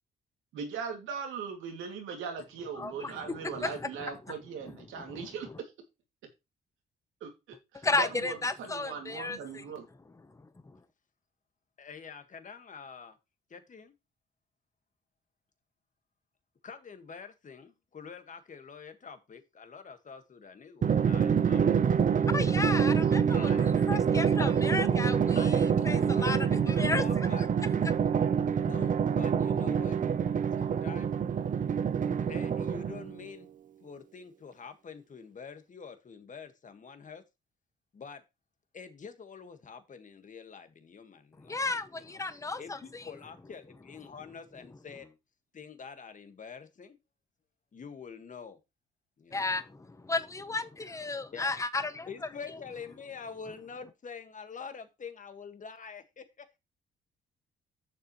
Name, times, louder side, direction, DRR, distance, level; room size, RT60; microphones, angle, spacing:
voice 1, 0.5-5.7 7.2-9.8, right 6 dB, 85° right, 2.4 m, -39 dB
voice 2, 2.8-3.1 3.4-3.9 5.1-5.3 7.8-9.6 22.3-25.5 25.8-26.4 26.6-27.0 41.5-42.8 49.3-52.1, left 3 dB, 15° left, 0.9 m, -33 dB
voice 3, 11.8-13.2 13.5-13.9 16.6-21.6 23.3-24.0 24.4-24.5 25.4-27.4 28.6-30.0 30.6-31.1 32.3-33.5 33.8-37.2 37.9-38.2 38.7-41.7 41.9-42.2 42.6-45.1 45.5-47.0 47.7-48.6 49.2-49.6 51.3-51.6 52.1-56.6, left 5 dB, 40° left, 1.7 m, -46 dB
Drum, 20.8-33.2, right 7 dB, 40° right, 0.7 m, -26 dB
10.0 x 7.0 x 3.1 m
cardioid pair, 90°, 20 cm